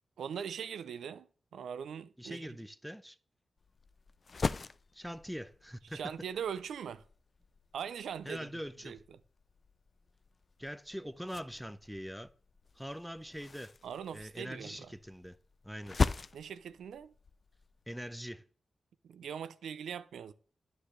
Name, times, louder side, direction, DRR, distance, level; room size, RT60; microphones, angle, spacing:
voice 1, 0.2-1.3 1.5-2.5 5.9-7.0 7.7-8.5 8.8-9.0 13.8-14.9 16.3-17.1 19.0-20.3, right 8 dB, 90° right, 0.3 m, -41 dB
voice 2, 2.2-3.2 4.9-6.2 8.2-9.0 10.6-12.3 12.7-13.7 14.1-15.4 15.6-16.0 17.9-18.4, equal, ahead, 0.6 m, -43 dB
sound 1, 3.6-18.3, left 4 dB, 55° left, 0.3 m, -41 dB
9.6 x 6.6 x 3.2 m
cardioid pair, 45°, 0 cm